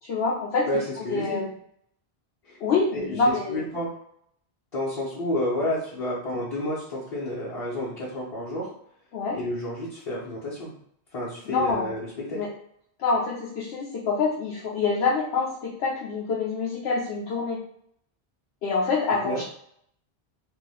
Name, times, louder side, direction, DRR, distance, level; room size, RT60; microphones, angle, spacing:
voice 1, 0.0-0.7 1.0-1.5 2.6-3.6 9.1-9.4 11.5-11.9 12.3-12.5 13.0-17.6 18.6-19.4, left 4 dB, 90° left, -3 dB, 0.8 m, -26 dB
voice 2, 0.7-1.4 2.4-2.6 2.9-3.9 4.7-8.7 9.3-10.7 11.1-12.4 19.2-19.4, left 1 dB, 40° left, -8 dB, 0.7 m, -30 dB
2.9 x 2.1 x 3.3 m, 0.70 s
omnidirectional pair, 1.1 m